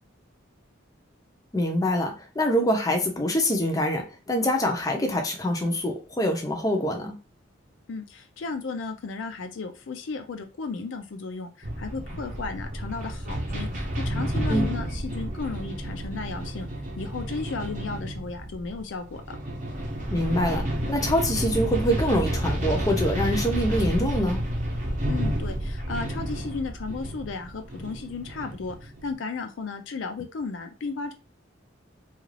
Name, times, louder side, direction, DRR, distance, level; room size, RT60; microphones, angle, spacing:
voice 1, 1.5-7.1 14.5-14.6 20.1-24.4, equal, 20° left, 2 dB, 0.5 m, -25 dB
voice 2, 7.9-16.7 17.0-19.2 25.1-31.1, left 4 dB, 70° left, 6 dB, 0.4 m, -34 dB
sound 1, 11.6-29.1, right 1 dB, 40° right, 0.7 m, -30 dB
2.4 x 2.3 x 3.2 m, 0.33 s
head